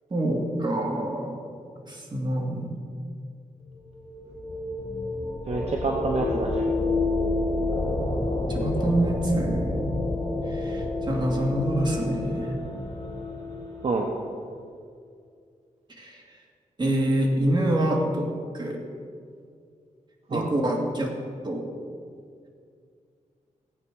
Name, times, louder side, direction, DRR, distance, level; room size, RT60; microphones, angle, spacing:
voice 1, 0.1-1.4 1.9-2.7 8.5-9.8 10.5-12.6 16.0-16.2 16.8-18.3 18.5-18.8 20.3-21.1 21.4-21.7, right 1 dB, 35° right, 0 dB, 2.4 m, -26 dB
sound 1, 3.7-14.3, left 2 dB, 35° left, 4.2 m, -29 dB
voice 2, 5.5-6.7 13.8-14.1 20.3-20.5, right 3 dB, 50° right, 0 dB, 1.2 m, -27 dB
16.5 x 8.7 x 6.3 m, 2.3 s
wide cardioid pair, 125°, 14 cm